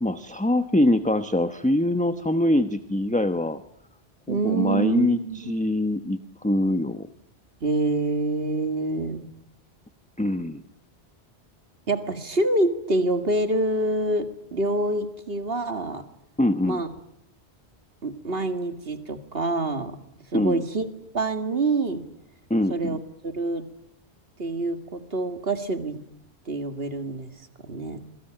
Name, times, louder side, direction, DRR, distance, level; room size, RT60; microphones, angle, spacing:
voice 1, 0.0-3.6 4.3-7.1 10.2-10.6 16.4-16.8 20.3-20.6 22.5-23.0, left 1 dB, 10° left, 10 dB, 1.0 m, -23 dB
voice 2, 4.3-5.6 7.6-9.3 11.9-16.0 16.6-16.9 18.0-19.9 20.3-22.0 22.7-23.0 23.2-23.7 24.4-26.0 26.5-27.3 27.6-28.0, right 2 dB, 65° right, 8 dB, 2.3 m, -26 dB
27.0 x 22.5 x 9.0 m, 0.74 s
omnidirectional pair, 1.1 m